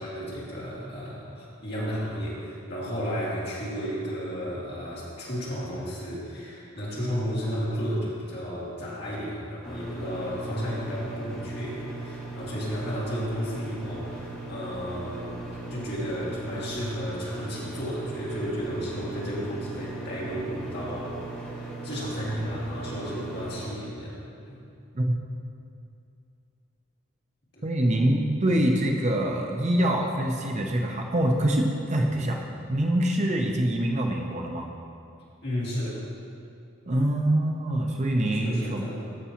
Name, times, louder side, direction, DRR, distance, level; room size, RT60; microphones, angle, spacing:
voice 1, 0.0-15.4 15.7-24.2 24.4-24.6 27.5-27.7 35.4-36.0 38.3-39.0, equal, 50° left, -7 dB, 2.2 m, -33 dB
sound 1, 9.6-23.7, right 2 dB, 5° left, 1.7 m, -38 dB
voice 2, 27.6-32.4 32.7-34.7 36.9-38.9, right 1 dB, 35° right, 1 dB, 0.6 m, -25 dB
14.0 x 6.0 x 2.9 m, 2.5 s
head